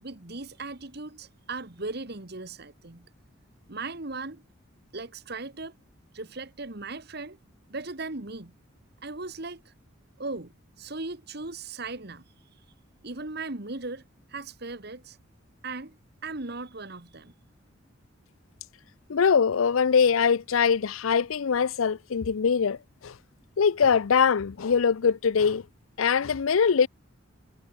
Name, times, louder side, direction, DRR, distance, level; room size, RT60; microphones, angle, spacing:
voice 1, 0.0-3.0 3.7-4.4 4.9-5.7 6.1-7.4 7.7-8.5 9.0-9.7 10.2-12.2 13.0-14.0 14.3-15.2 15.6-16.0 16.2-17.3, right 3 dB, 50° right, 1.8 m, -37 dB
voice 2, 19.1-22.8 23.0-23.1 23.6-25.6 26.0-26.9, left 6 dB, 85° left, 0.5 m, -22 dB
head